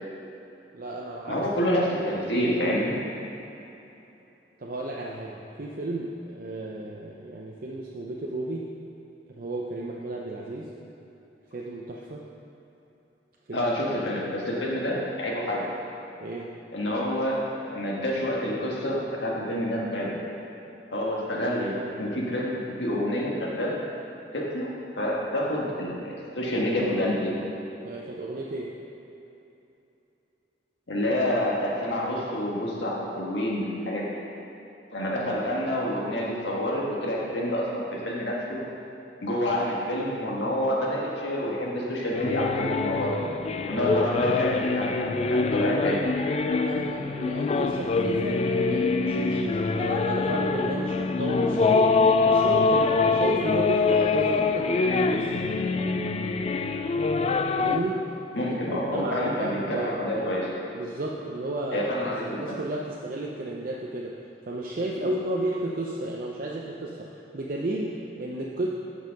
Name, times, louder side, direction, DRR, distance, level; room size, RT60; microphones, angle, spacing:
voice 1, 0.7-1.5 4.6-8.7 9.3-10.7 11.5-12.2 13.5-13.7 16.2-16.6 27.8-28.8 43.7-44.4 46.6-55.5 57.6-58.1 58.4-58.5 58.9-60.4 60.7-64.2 64.5-68.7, right 1 dB, 50° right, -2 dB, 0.6 m, -33 dB
voice 2, 1.3-2.9 13.5-15.7 16.7-20.2 20.9-23.7 24.3-24.7 25.0-27.3 30.9-34.1 34.9-38.6 39.2-43.2 43.7-46.0 58.3-60.5 61.7-62.6, left 1 dB, 90° left, -3 dB, 1.6 m, -28 dB
sound 1, 42.1-57.8, left 4 dB, 35° left, 0.3 m, -24 dB
9.0 x 5.5 x 5.2 m, 2.9 s
head